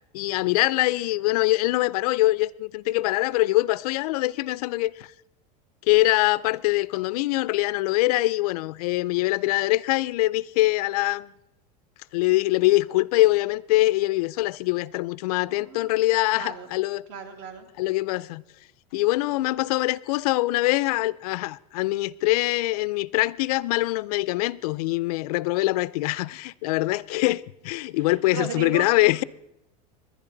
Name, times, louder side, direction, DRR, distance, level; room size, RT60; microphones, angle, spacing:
voice 1, 0.1-5.1 5.9-11.3 12.1-17.0 17.8-18.4 18.9-29.2, left 19 dB, 70° left, 0.4 m, -23 dB
voice 2, 15.5-16.7 17.1-17.7 28.0-29.1, right 7 dB, 55° right, 1.9 m, -37 dB
21.0 x 11.0 x 3.9 m
supercardioid pair, 165°, 20 cm